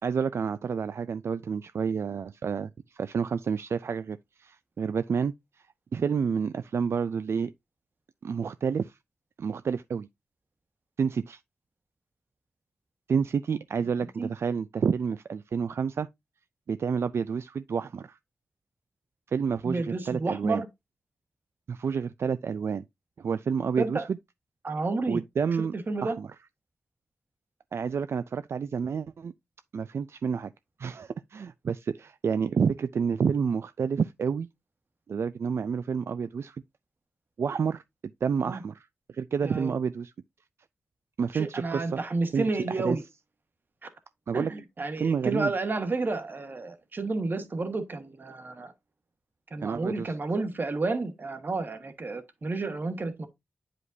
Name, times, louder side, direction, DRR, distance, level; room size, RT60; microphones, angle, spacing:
voice 1, 0.0-5.3 5.9-7.5 8.2-9.0 9.4-10.1 11.0-11.4 13.1-16.1 16.7-18.2 19.3-20.6 21.7-22.8 23.2-24.2 25.1-25.7 26.0-26.3 27.7-29.3 29.7-30.5 30.8-34.5 35.1-36.6 37.4-37.8 38.2-38.9 39.1-40.1 41.2-42.0 42.3-43.0 44.3-44.5 45.0-45.5 49.6-50.1, right 6 dB, 75° right, 0.3 m, -29 dB
voice 2, 19.6-20.7 23.8-24.1 24.6-25.2 25.7-26.2 38.4-38.6 39.4-39.7 41.3-43.0 43.8-43.9 44.3-48.7 49.5-53.3, right 3 dB, 50° right, 1.4 m, -31 dB
9.7 x 5.1 x 2.6 m
wide cardioid pair, 105°, 5 cm